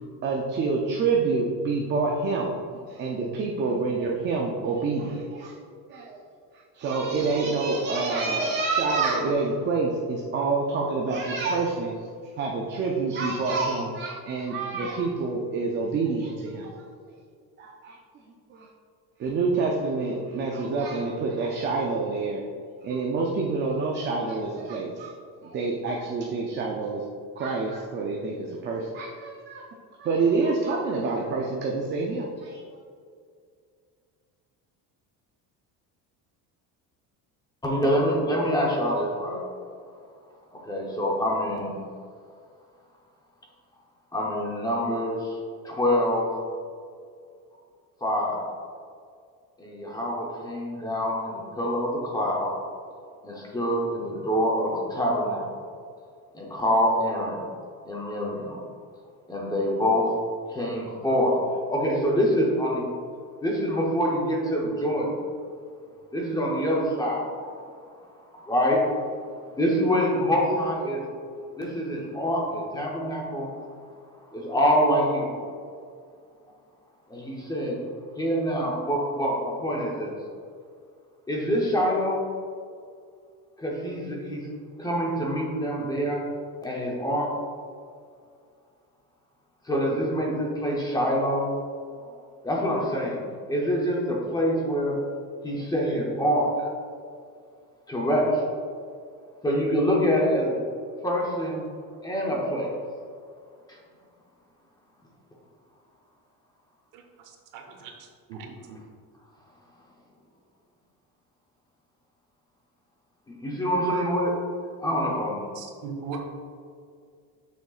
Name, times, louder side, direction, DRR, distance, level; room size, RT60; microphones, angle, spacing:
voice 1, 0.2-2.6 2.9-5.6 5.9-6.2 6.7-12.0 12.4-16.8 17.6-18.0 18.5-18.7 19.2-22.4 22.8-25.1 25.4-27.0 27.4-29.6 30.0-32.6, right 4 dB, 30° right, -1 dB, 0.4 m, -27 dB
voice 2, 37.6-39.5 40.5-41.7 44.1-45.4 45.6-46.4 48.0-48.4 49.6-52.5 53.2-55.7 56.3-57.4 57.9-58.6 59.3-60.1 60.5-61.4 61.7-62.9 63.4-65.1 66.1-67.3 68.3-68.9 69.6-71.0 71.6-73.5 74.3-75.4 77.1-77.8 78.2-80.1 81.3-82.3 83.6-84.4 84.8-86.2 86.6-87.3 89.6-92.1 92.4-95.0 95.4-96.7 97.9-98.4 99.4-100.6 101.0-101.7 102.0-102.7 113.3-114.4 114.8-115.4, equal, 10° left, -3 dB, 0.7 m, -25 dB
voice 3, 107.5-107.9 108.3-108.8 115.5-116.2, right 5 dB, 60° right, 3 dB, 0.9 m, -38 dB
6.6 x 6.3 x 2.4 m, 2.2 s
cardioid pair, 180°, 36 cm